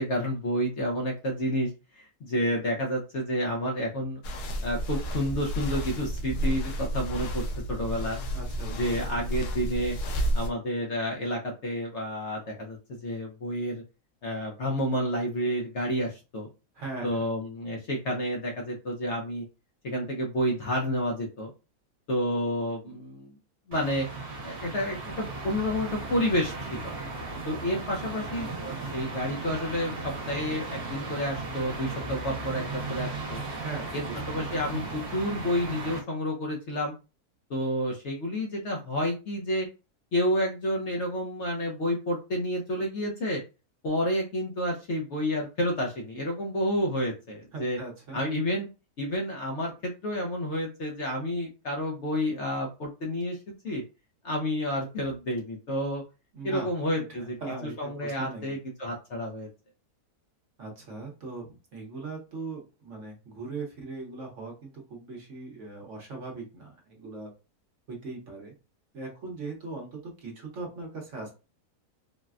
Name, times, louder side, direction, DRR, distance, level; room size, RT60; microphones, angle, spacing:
voice 1, 0.0-4.2 4.6-8.2 8.8-10.0 10.3-12.8 13.0-13.8 14.2-16.5 17.0-19.4 19.8-21.5 22.1-23.3 23.7-24.1 24.4-26.9 27.5-33.4 33.9-36.9 37.5-39.7 40.1-43.4 43.8-47.8 48.1-48.7 49.0-53.4 53.6-53.8 54.2-56.0 56.4-57.4 57.8-59.5, equal, 60° left, 0 dB, 0.8 m, -30 dB
sound 1, 4.2-10.5, right 1 dB, 85° left, 1.2 m, -31 dB
voice 2, 8.3-8.7 16.7-17.2 33.5-34.4 47.5-48.2 56.3-58.6 60.6-67.3 67.9-68.5 68.9-71.3, right 3 dB, 55° right, 1 dB, 1.1 m, -40 dB
sound 2, 23.7-36.0, right 3 dB, 70° right, 1.3 m, -36 dB
4.0 x 2.1 x 2.4 m, 0.30 s
omnidirectional pair, 1.7 m